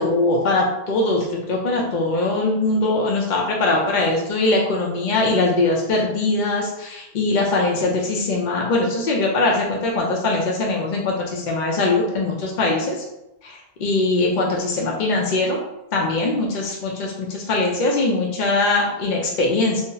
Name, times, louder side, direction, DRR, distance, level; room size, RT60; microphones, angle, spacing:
voice 1, 0.0-13.0 13.4-15.6 15.9-19.8, left 2 dB, 55° left, -1 dB, 0.6 m, -21 dB
2.6 x 2.1 x 3.7 m, 0.90 s
omnidirectional pair, 1.1 m